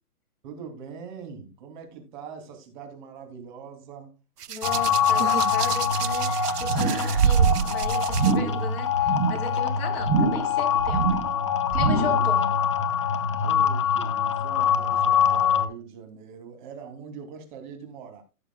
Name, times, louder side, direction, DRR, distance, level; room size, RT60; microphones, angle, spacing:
voice 1, 0.4-4.1 12.1-12.3 13.4-18.2, right 6 dB, 30° right, 2.8 m, -42 dB
Hands, 4.4-8.3 9.4-9.6, right 8 dB, 80° right, 0.9 m, -26 dB
voice 2, 4.5-11.1 11.7-12.6, left 4 dB, 40° left, 3.7 m, -36 dB
sound 1, 4.6-15.7, left 7 dB, 20° left, 0.5 m, -24 dB
sound 2, 6.6-7.1 7.4-7.7 8.1-8.6 9.0-9.4 10.0-10.5 10.8-11.3 11.7-12.3 12.6-12.7, right 4 dB, 10° right, 1.2 m, -26 dB
16.0 x 6.9 x 2.2 m
hypercardioid pair, 155°, 46 cm